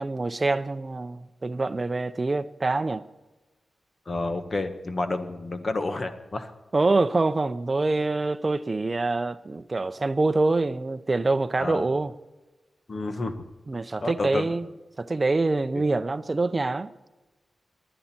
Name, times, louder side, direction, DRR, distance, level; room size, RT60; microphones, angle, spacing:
voice 1, 0.0-3.0 6.7-12.1 13.7-14.6 15.0-16.9, right 3 dB, 30° right, 0.7 m, -25 dB
voice 2, 4.0-6.5 11.6-11.8 12.9-13.4 14.0-14.5 15.7-15.8, left 2 dB, 40° left, 1.4 m, -30 dB
20.0 x 11.0 x 4.4 m
wide cardioid pair, 115°, 0 cm